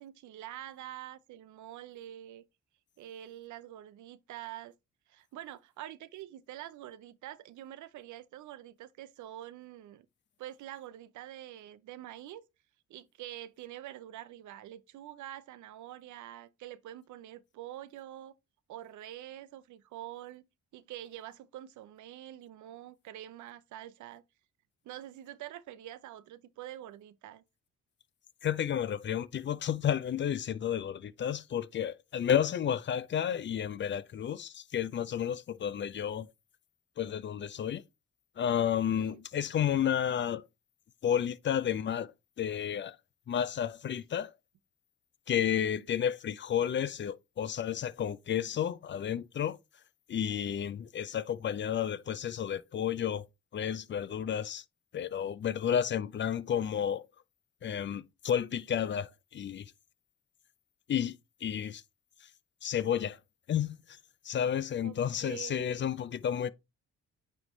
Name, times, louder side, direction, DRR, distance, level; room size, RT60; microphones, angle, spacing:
voice 1, 0.0-2.4 3.0-4.7 5.1-10.1 10.4-12.4 12.9-18.3 18.7-20.5 20.7-24.2 24.8-27.4 39.0-39.2 64.8-65.8, right 13 dB, 75° right, 0.6 m, -46 dB
voice 2, 28.4-36.3 37.0-37.8 38.4-40.4 41.0-42.1 42.4-43.0 43.3-44.3 45.3-49.6 50.1-53.3 53.5-54.6 54.9-57.1 57.6-59.6 60.9-61.8 62.6-63.2 63.5-63.8 64.2-66.5, left 9 dB, 40° left, 0.4 m, -31 dB
9.1 x 3.3 x 3.1 m
cardioid pair, 90°, 30 cm